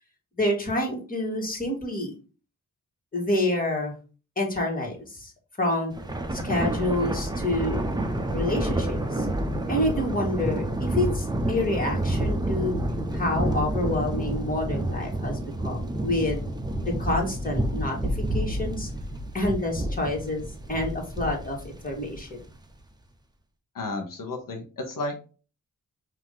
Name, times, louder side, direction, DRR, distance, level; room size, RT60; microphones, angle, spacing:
voice 1, 0.4-2.1 3.1-3.9 4.4-5.3 5.6-5.9 6.3-7.8 8.3-9.3 9.7-12.8 13.1-16.4 16.8-18.9 19.3-22.4, left 1 dB, 25° left, -1 dB, 1.9 m, -28 dB
Thunder, 5.9-22.5, right 1 dB, 15° right, 0.7 m, -29 dB
voice 2, 23.7-25.3, left 2 dB, 75° left, 2 dB, 1.0 m, -33 dB
4.9 x 2.8 x 3.8 m, 0.36 s
wide cardioid pair, 90°, 33 cm